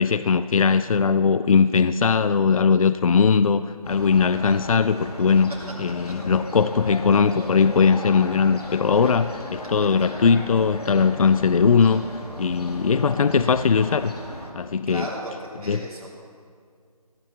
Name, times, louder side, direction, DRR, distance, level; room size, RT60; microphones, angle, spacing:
voice 1, 0.0-5.5 5.8-12.1 12.4-14.1 14.6-15.1 15.7-15.9, left 5 dB, 60° left, 13 dB, 0.4 m, -20 dB
sound 1, 3.8-14.5, left 1 dB, 80° left, 2.2 m, -36 dB
voice 2, 14.9-16.1, right 1 dB, 70° right, -4 dB, 3.3 m, -35 dB
16.0 x 6.0 x 8.4 m, 2.2 s
figure-of-eight pair, 165°, 20 cm